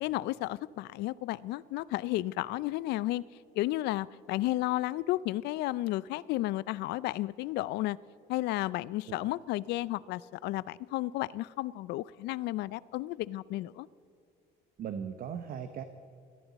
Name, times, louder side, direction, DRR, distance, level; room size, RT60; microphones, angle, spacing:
voice 1, 0.0-3.2 3.6-8.0 8.3-13.9, left 16 dB, 80° left, 20 dB, 0.4 m, -33 dB
voice 2, 14.8-15.8, right 8 dB, 60° right, 8 dB, 0.9 m, -38 dB
21.5 x 14.5 x 4.1 m, 2.4 s
cardioid pair, 110°, 17 cm